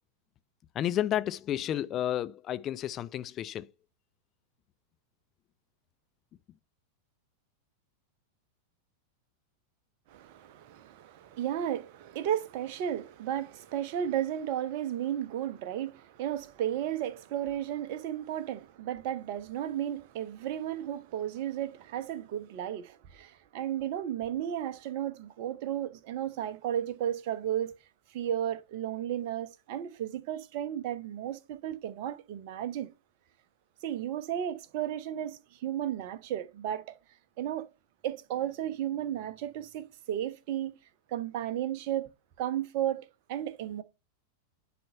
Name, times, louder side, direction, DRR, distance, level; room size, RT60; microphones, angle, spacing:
voice 1, 0.8-3.7, left 11 dB, 30° left, 0.4 m, -31 dB
voice 2, 10.1-27.7 28.1-32.9 33.8-36.9 37.4-37.7 38.0-40.8 41.1-42.1 42.4-43.8, right 11 dB, 45° right, 1.0 m, -34 dB
10.5 x 4.4 x 5.5 m
figure-of-eight pair, 90°, 0 cm